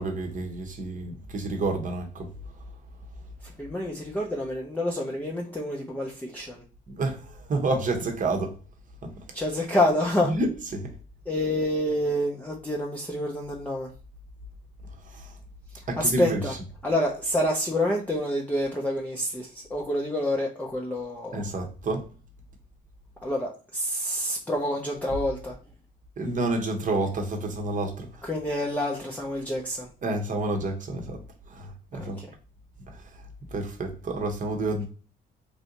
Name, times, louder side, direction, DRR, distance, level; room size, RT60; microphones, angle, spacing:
voice 1, 0.0-2.3 6.9-8.5 9.0-9.1 10.2-10.8 15.1-15.3 15.9-16.4 21.3-22.0 26.2-28.1 30.0-31.2 31.5-32.2 33.5-34.8, right 2 dB, 40° right, 0.9 m, -29 dB
voice 2, 3.4-6.6 9.3-10.3 11.3-13.9 16.0-16.6 16.8-21.4 23.2-25.6 28.2-29.9 31.9-32.3, left 1 dB, 10° left, 0.6 m, -28 dB
3.2 x 2.6 x 2.8 m
cardioid pair, 90°, 20 cm